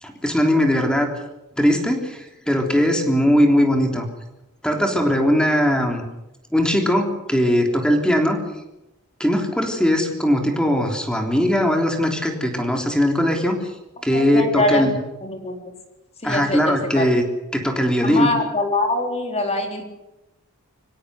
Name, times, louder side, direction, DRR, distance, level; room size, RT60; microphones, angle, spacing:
voice 1, 0.0-1.1 1.6-4.1 4.6-6.0 6.5-8.4 9.2-13.6 14.0-15.0 16.2-17.2 17.5-18.3, equal, 5° left, 3 dB, 3.4 m, -19 dB
voice 2, 14.1-14.9 15.2-15.6 16.2-17.1 18.0-19.8, left 2 dB, 30° left, 4 dB, 4.0 m, -23 dB
25.0 x 16.5 x 8.2 m, 0.94 s
head